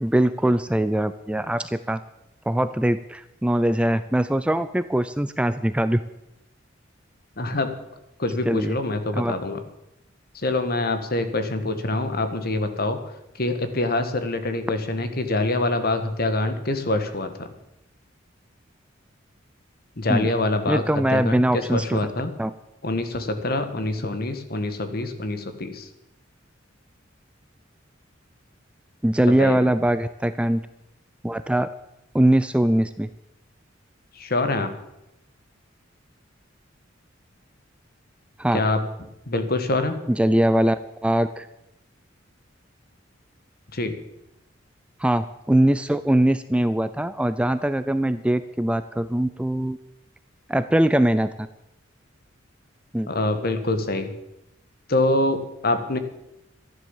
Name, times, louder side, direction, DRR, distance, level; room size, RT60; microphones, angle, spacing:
voice 1, 0.0-2.0 2.5-6.0 8.5-8.8 9.1-9.3 20.1-20.3 20.7-22.0 22.4-22.5 29.0-30.6 31.2-31.7 32.1-33.1 38.4-38.6 40.2-41.5 45.0-49.8 50.5-51.5 52.9-53.1, right 1 dB, 5° right, 12 dB, 0.4 m, -22 dB
voice 2, 7.4-7.7 8.2-9.6 10.3-13.0 13.3-17.5 20.0-22.3 22.8-25.9 29.2-29.8 34.1-34.7 38.5-38.8 39.3-40.0 43.7-44.0 53.1-54.1 54.9-56.0, left 2 dB, 50° left, 9 dB, 1.7 m, -25 dB
13.5 x 11.0 x 7.3 m, 0.87 s
head